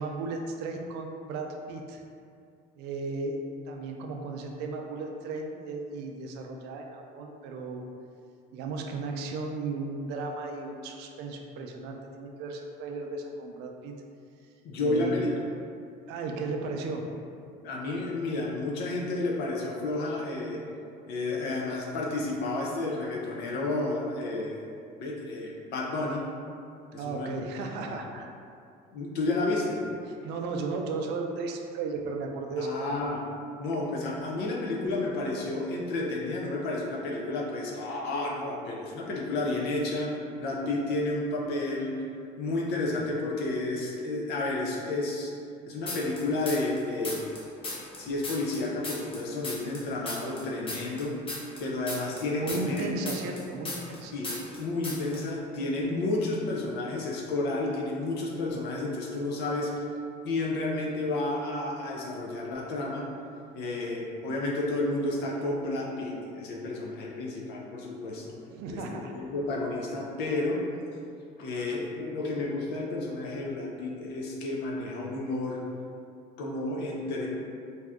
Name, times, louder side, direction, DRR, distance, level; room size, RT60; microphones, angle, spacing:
voice 1, 0.0-2.0 2.8-7.8 8.5-14.0 14.8-15.2 16.1-17.0 27.0-28.3 30.0-32.7 52.3-54.1 68.5-69.1, right 3 dB, 75° right, 2 dB, 0.4 m, -35 dB
voice 2, 14.6-15.3 17.6-20.6 21.1-24.6 25.0-26.2 26.9-27.4 27.8-28.0 28.9-29.8 32.6-33.2 33.6-42.0 42.4-45.3 45.7-47.3 48.0-51.1 51.6-52.9 54.1-59.7 60.2-63.1 63.5-68.3 68.7-70.7 71.4-75.6 76.4-77.3, left 2 dB, 70° left, -2 dB, 0.5 m, -31 dB
sound 1, 45.9-46.8 47.0-49.8 50.1-54.0 54.2-54.6 54.8-55.2, left 2 dB, 30° left, 0.7 m, -36 dB
2.7 x 2.3 x 3.4 m, 2.4 s
cardioid pair, 130°, 18 cm